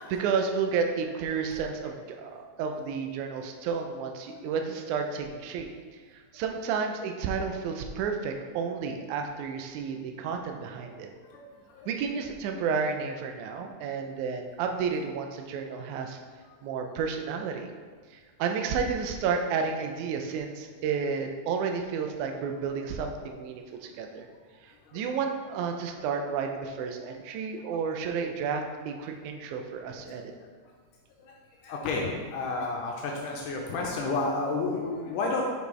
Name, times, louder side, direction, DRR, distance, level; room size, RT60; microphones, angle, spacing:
voice 1, 0.0-5.7 6.1-11.1 11.9-16.2 16.6-17.7 18.1-24.3 24.6-30.3, right 5 dB, 80° right, 4 dB, 1.9 m, -31 dB
voice 2, 31.6-35.5, left 3 dB, 80° left, -1 dB, 2.2 m, -31 dB
6.6 x 5.3 x 3.2 m, 1.6 s
omnidirectional pair, 3.8 m